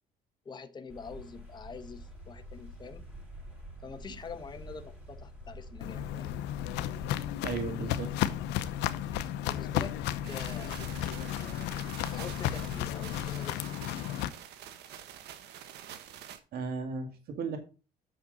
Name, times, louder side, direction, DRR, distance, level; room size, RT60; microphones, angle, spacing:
voice 1, 0.4-3.1 3.8-6.4 8.8-10.7 12.1-14.1, left 5 dB, 25° left, 1.1 m, -45 dB
sound 1, 0.9-13.4, equal, 5° right, 5.1 m, -47 dB
Walk footsteps, 5.8-14.3, left 13 dB, 90° left, 0.7 m, -33 dB
voice 2, 7.4-8.1 16.5-17.6, right 4 dB, 65° right, 2.1 m, -35 dB
sound 2, 10.2-16.4, right 10 dB, 80° right, 1.3 m, -47 dB
8.7 x 6.5 x 3.9 m
cardioid pair, 110°, 17 cm